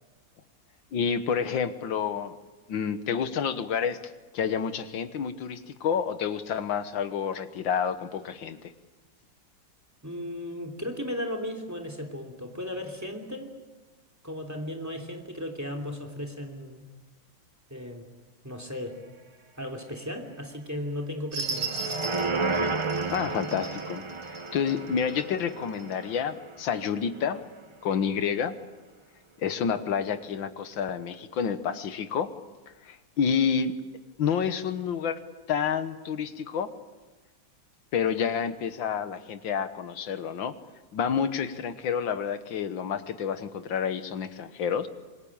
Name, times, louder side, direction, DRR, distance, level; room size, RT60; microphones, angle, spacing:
voice 1, 0.9-2.3 2.7-4.0 4.3-8.7 23.1-24.0 24.5-27.4 27.8-28.6 29.4-32.3 32.8-33.7 34.2-35.2 35.5-36.7 37.9-40.5 40.9-44.9, left 7 dB, 90° left, 11 dB, 2.0 m, -29 dB
voice 2, 10.0-13.5 14.2-16.9 17.7-18.1 18.4-19.0 19.6-21.9, left 1 dB, 10° right, 5 dB, 3.1 m, -36 dB
sound 1, 21.3-25.2 25.8-25.9, right 4 dB, 65° right, 2.9 m, -36 dB
sound 2, 21.4-26.8 27.2-27.3, right 3 dB, 40° right, 0.4 m, -32 dB
26.5 x 21.5 x 8.9 m, 1.2 s
omnidirectional pair, 2.1 m